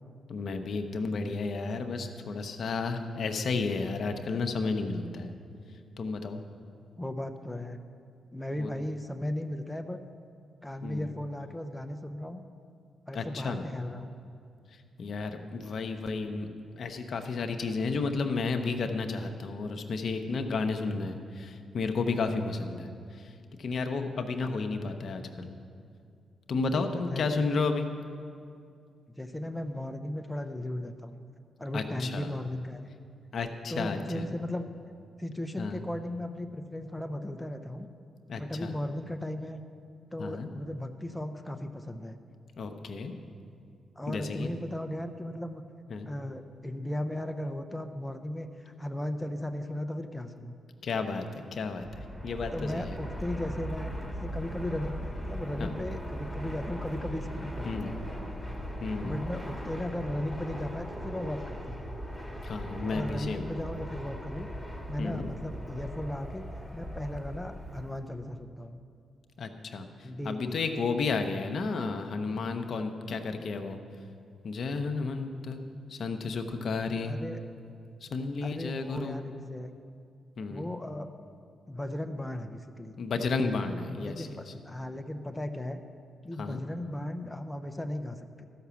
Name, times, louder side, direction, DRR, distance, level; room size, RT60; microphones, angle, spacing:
voice 1, 0.3-5.3 6.0-6.4 8.6-8.7 10.8-11.1 13.1-13.6 15.0-16.5 16.8-22.9 23.6-25.5 26.5-27.9 31.7-32.3 33.3-34.2 35.6-35.8 38.3-38.7 40.2-40.5 42.6-43.1 44.1-44.5 45.9-46.1 50.8-51.3 51.5-51.9 52.2-52.9 55.6-55.7 57.6-57.9 58.8-59.1 62.4-63.4 65.0-65.3 69.4-69.9 70.2-73.8 74.4-75.6 75.9-77.1 78.0-79.2 80.4-80.7 83.0-84.3 86.4-86.6, left 4 dB, 65° left, 6 dB, 0.8 m, -32 dB
voice 2, 7.0-7.8 8.3-10.0 10.6-12.4 13.1-14.1 26.7-27.5 29.2-31.2 31.6-32.9 33.7-34.7 35.2-37.9 38.3-39.6 40.1-42.2 44.0-45.6 46.1-50.6 52.5-58.0 59.0-61.8 62.9-64.5 64.9-66.4 66.7-68.8 70.0-70.6 77.0-77.5 78.4-79.7 80.4-81.1 81.7-83.0 84.0-84.3 84.6-85.8 86.2-88.5, left 1 dB, 10° left, 6 dB, 0.7 m, -36 dB
Fixed-wing aircraft airplane, 51.7-68.0, equal, 5° right, 1.9 m, -39 dB
12.5 x 5.9 x 7.0 m, 2.4 s
supercardioid pair, 55°, 0 cm